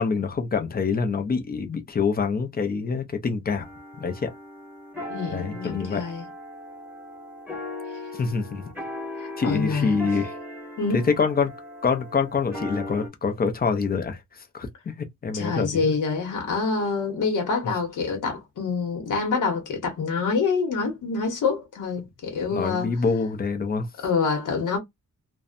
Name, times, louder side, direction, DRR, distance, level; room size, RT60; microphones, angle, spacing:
voice 1, 0.0-3.7 4.0-4.3 5.3-6.0 8.1-8.6 9.4-10.3 10.9-11.5 11.8-15.9 22.5-23.9, left 5 dB, 30° left, 0.5 m, -26 dB
sound 1, 3.6-13.1, left 1 dB, 5° right, 1.1 m, -38 dB
voice 2, 5.1-6.2 9.1-10.0 10.8-11.0 15.3-22.9 24.0-24.8, left 4 dB, 75° left, 1.0 m, -26 dB
2.6 x 2.1 x 2.4 m
wide cardioid pair, 155°, 31 cm